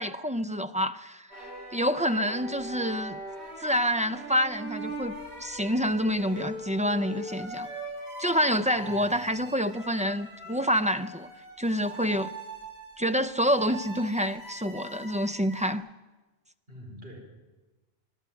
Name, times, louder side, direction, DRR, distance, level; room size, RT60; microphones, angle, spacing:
voice 1, 0.0-3.2 3.6-7.7 8.2-11.3 11.6-12.3 13.0-15.8, equal, 10° right, 0.4 m, -27 dB
sound 1, 1.3-15.7, right 1 dB, 80° right, 4.6 m, -41 dB
voice 2, 8.7-9.1 16.7-17.2, equal, 60° right, 4.9 m, -45 dB
25.0 x 11.5 x 9.1 m
omnidirectional pair, 1.1 m